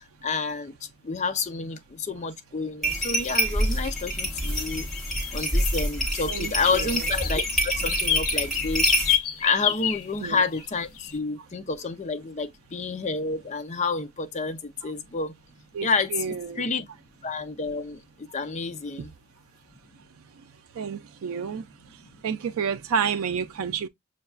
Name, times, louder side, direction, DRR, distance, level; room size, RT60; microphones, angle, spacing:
voice 1, 0.0-4.9 5.3-8.9 9.4-15.3 15.8-16.9 17.2-19.1 22.0-22.1, left 4 dB, 30° left, 0.5 m, -29 dB
sound 1, 2.8-9.2, equal, ahead, 1.2 m, -26 dB
sound 2, 3.4-3.5 3.7-5.8 6.1-10.7 11.0-11.1, left 10 dB, 85° left, 0.6 m, -30 dB
voice 2, 6.3-7.0 10.2-10.4 14.8-14.9 15.7-16.6 20.8-21.7 22.2-23.9, right 7 dB, 75° right, 0.4 m, -30 dB
6.5 x 2.3 x 2.3 m
head